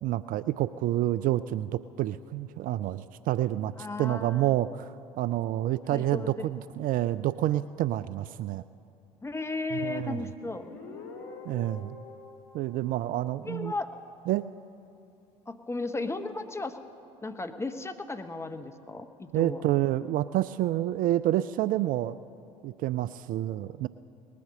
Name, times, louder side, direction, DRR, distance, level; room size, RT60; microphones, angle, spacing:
voice 1, 0.0-8.6 9.7-10.2 11.5-12.0 12.5-13.7 14.3-14.5 19.3-22.2 22.6-23.9, right 14 dB, 50° right, 16 dB, 0.4 m, -28 dB
voice 2, 3.8-4.5 5.9-6.5 9.2-10.7 13.4-13.9 15.5-16.8 17.2-19.6, left 3 dB, 15° left, 8 dB, 1.0 m, -35 dB
Guitar, 10.4-13.9, left 4 dB, 60° left, 2.1 m, -46 dB
19.5 x 8.5 x 6.5 m, 2.6 s
hypercardioid pair, 60°, 18 cm